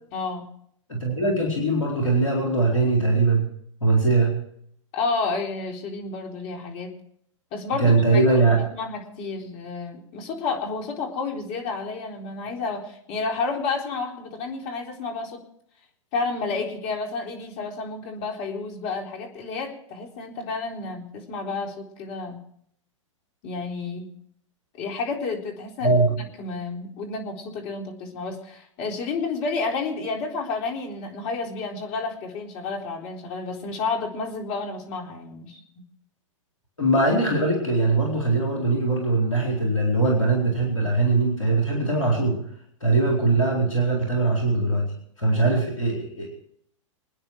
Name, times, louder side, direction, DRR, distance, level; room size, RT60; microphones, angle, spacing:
voice 1, 0.1-0.5 4.9-6.9 7.5-15.4 16.1-22.4 23.4-24.1 24.7-26.1 26.4-35.6, left 4 dB, 40° left, 1 dB, 4.0 m, -31 dB
voice 2, 0.9-3.4 3.8-4.3 7.8-8.6 25.8-26.1 36.8-42.4 42.8-44.9 45.2-46.3, right 3 dB, 85° left, -2 dB, 4.4 m, -21 dB
26.5 x 9.9 x 4.7 m, 0.69 s
figure-of-eight pair, 105°, 16 cm